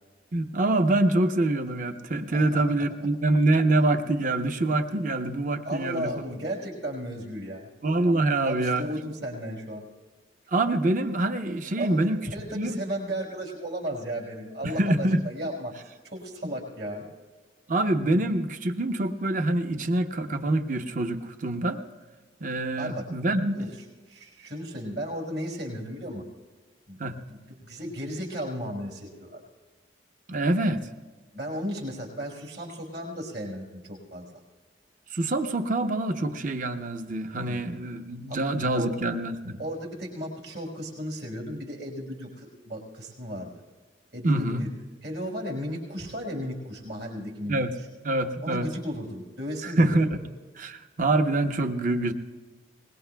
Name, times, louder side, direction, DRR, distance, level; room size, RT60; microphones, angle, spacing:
voice 1, 0.3-6.1 7.8-8.8 10.5-12.2 12.5-12.8 14.6-15.2 17.7-21.8 22.4-23.7 27.0-27.1 30.3-30.8 35.1-39.6 44.2-44.6 47.5-47.7 48.0-48.7 49.6-50.2 50.6-52.1, right 2 dB, 45° right, 7 dB, 0.9 m, -25 dB
voice 2, 2.3-2.6 3.0-3.1 5.6-7.7 8.4-9.8 11.8-17.1 22.8-23.1 23.5-23.7 24.1-26.2 26.9-27.0 27.3-29.4 31.3-34.3 37.4-37.6 38.3-38.4 38.7-39.0 39.6-43.5 44.1-44.7 45.0-47.9 48.4-50.2, equal, 65° right, -1 dB, 5.0 m, -35 dB
23.0 x 21.0 x 2.3 m, 1.4 s
head